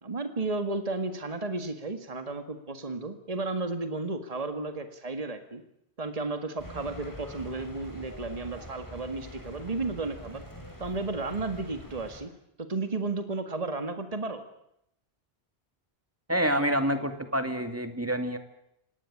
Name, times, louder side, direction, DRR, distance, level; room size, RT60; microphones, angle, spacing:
voice 1, 0.0-5.6 6.0-10.4 10.8-12.3 12.6-14.4, right 3 dB, 35° right, 8 dB, 2.0 m, -33 dB
sound 1, 6.6-12.2, equal, 20° left, 5.8 m, -44 dB
voice 2, 16.3-18.4, equal, 15° right, 8 dB, 2.6 m, -27 dB
27.0 x 19.5 x 8.6 m, 0.78 s
omnidirectional pair, 1.1 m